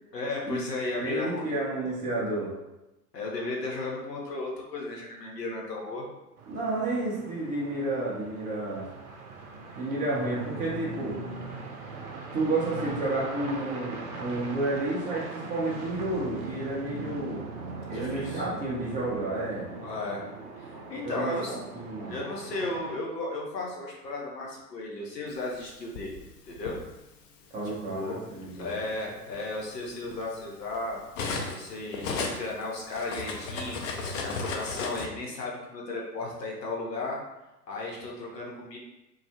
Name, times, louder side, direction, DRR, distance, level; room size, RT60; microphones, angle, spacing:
voice 1, 0.1-1.5 3.1-6.0 17.9-18.4 19.8-20.2 20.6-21.6 22.1-26.2 26.5-26.8 27.6-28.2 28.6-31.0 31.5-37.2 37.7-38.8, left 2 dB, 85° left, -2 dB, 0.8 m, -35 dB
voice 2, 1.0-2.5 6.5-8.9 9.7-11.2 12.3-17.4 17.9-19.7 21.0-22.1 27.5-28.8, right 2 dB, 15° right, -7 dB, 0.5 m, -31 dB
sound 1, 6.4-23.0, right 3 dB, 65° right, 0.6 m, -40 dB
Cutlery silverware, 25.5-26.8 27.8-28.0 28.4-31.6 31.9-35.1, left 4 dB, 50° left, 0.5 m, -35 dB
2.2 x 2.0 x 2.8 m, 0.99 s
figure-of-eight pair, 95°, 48 cm